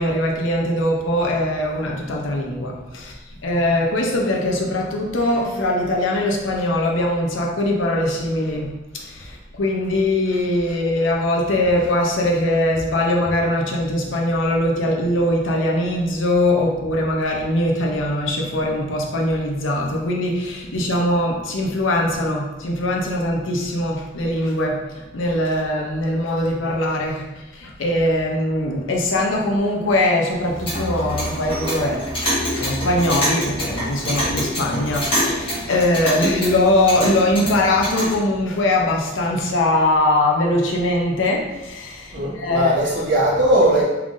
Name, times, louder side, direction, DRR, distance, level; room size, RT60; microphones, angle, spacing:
voice 1, 0.0-3.1 3.4-27.3 27.5-42.7, left 1 dB, 75° left, 0 dB, 0.6 m, -21 dB
Clock, 30.4-38.1, equal, 25° left, 1.2 m, -26 dB
voice 2, 42.1-43.8, right 1 dB, 65° right, -6 dB, 1.1 m, -18 dB
3.6 x 3.3 x 2.5 m, 1.0 s
head